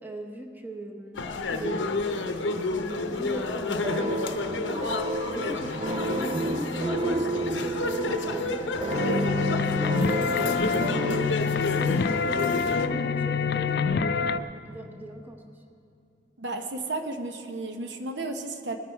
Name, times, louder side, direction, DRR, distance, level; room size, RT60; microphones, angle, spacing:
voice 1, 0.0-7.3 7.6-11.1 11.5-15.6, right 1 dB, 10° right, 3 dB, 1.0 m, -40 dB
sound 1, 1.2-12.9, left 3 dB, 75° left, 0.8 m, -31 dB
sound 2, 3.8-11.3, right 1 dB, 30° right, 0.5 m, -30 dB
sound 3, 8.9-14.4, left 5 dB, 55° left, 0.4 m, -26 dB
voice 2, 16.4-18.8, right 2 dB, 65° right, 5 dB, 0.9 m, -33 dB
19.5 x 10.0 x 4.5 m, 2.6 s
head